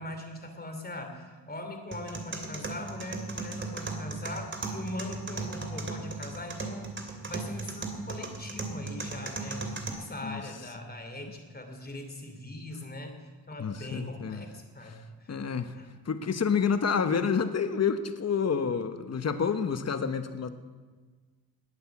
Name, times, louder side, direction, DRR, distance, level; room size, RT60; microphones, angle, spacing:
voice 1, 0.0-6.9 7.3-13.1 13.5-15.4 15.7-15.9, left 1 dB, 25° left, 5 dB, 2.9 m, -41 dB
sound 1, 1.9-9.9, right 3 dB, 30° right, 2.7 m, -37 dB
voice 2, 13.6-14.4 15.3-15.7 16.0-20.5, left 6 dB, 40° left, 10 dB, 1.1 m, -28 dB
19.5 x 8.9 x 7.3 m, 1.4 s
cardioid pair, 90°, 40 cm